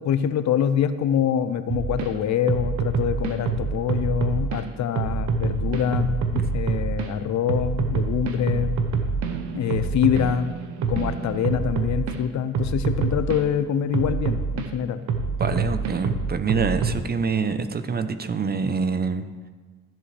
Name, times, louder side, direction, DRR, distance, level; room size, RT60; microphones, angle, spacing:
voice 1, 0.0-6.2 6.5-8.8 9.5-10.6 10.9-15.0, left 9 dB, 65° left, 12 dB, 0.6 m, -25 dB
sound 1, 1.7-2.1 2.5-4.6 5.0-7.1 7.5-12.2 12.5-13.4 13.9-14.7 15.1-17.0, right 5 dB, 75° right, 1.0 m, -26 dB
voice 2, 15.4-19.2, right 5 dB, 30° right, 10 dB, 0.7 m, -26 dB
14.0 x 7.6 x 3.3 m, 1.4 s
cardioid pair, 90°, 30 cm